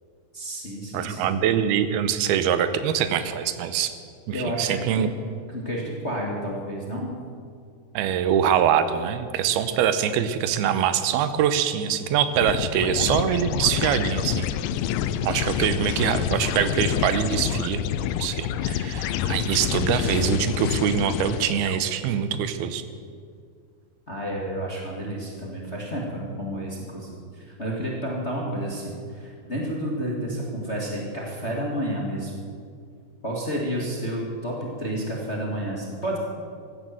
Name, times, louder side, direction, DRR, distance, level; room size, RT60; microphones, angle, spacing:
voice 1, 0.3-1.4 4.3-5.1 5.5-7.1 24.1-32.4 33.2-36.2, equal, 25° left, -2 dB, 1.5 m, -30 dB
voice 2, 0.9-3.9 4.3-5.1 7.9-14.5 15.2-17.8 18.2-22.8, right 9 dB, 85° right, 11 dB, 2.8 m, -24 dB
sound 1, 12.4-21.8, left 10 dB, 80° left, 2.1 m, -27 dB
15.5 x 12.0 x 7.6 m, 2.2 s
omnidirectional pair, 4.4 m